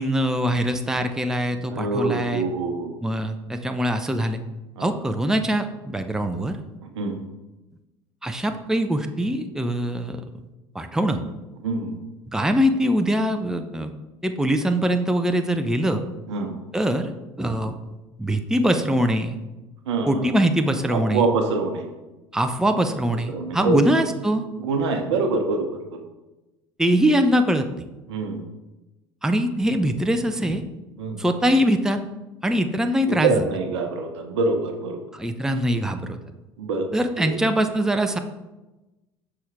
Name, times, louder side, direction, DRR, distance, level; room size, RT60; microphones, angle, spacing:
voice 1, 0.0-2.4 3.0-4.4 4.8-6.6 8.2-10.2 10.7-11.2 12.3-13.9 14.2-16.0 16.7-17.1 17.4-17.8 18.2-19.4 20.1-21.2 22.3-24.4 26.8-27.7 29.2-30.6 31.2-32.0 32.4-33.3 35.1-36.2 36.9-38.2, equal, 5° right, 7 dB, 0.5 m, -22 dB
voice 2, 1.7-2.9 4.8-4.9 6.9-7.2 11.6-11.9 16.3-16.5 19.9-20.3 20.9-21.9 23.3-23.8 24.6-25.8 28.1-28.4 31.0-31.2 33.1-35.0 36.6-36.9 37.2-37.3, right 3 dB, 75° right, 4 dB, 0.9 m, -25 dB
6.0 x 3.7 x 4.7 m, 1.1 s
hypercardioid pair, 65°, 15 cm